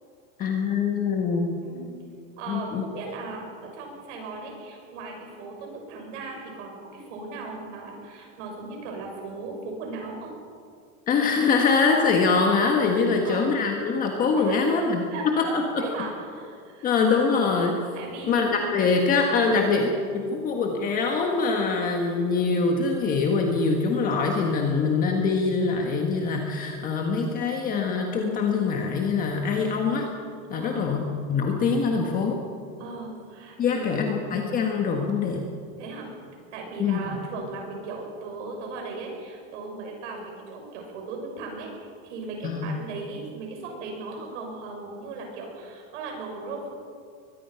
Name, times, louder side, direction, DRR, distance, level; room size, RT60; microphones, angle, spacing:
voice 1, 0.4-1.5 2.5-2.8 11.1-15.0 15.4-15.6 16.8-17.8 18.3-19.9 20.1-30.1 30.5-31.0 31.3-32.4 33.6-35.5 36.8-37.0 42.4-42.8, left 4 dB, 20° left, 2 dB, 1.5 m, -24 dB
voice 2, 2.4-10.3 13.1-13.4 14.4-16.9 17.9-18.5 19.4-19.7 30.5-30.9 32.8-34.1 35.8-36.1 36.5-46.7, right 3 dB, 60° right, 1 dB, 6.6 m, -37 dB
23.0 x 20.5 x 5.8 m, 2.3 s
supercardioid pair, 175°, 40 cm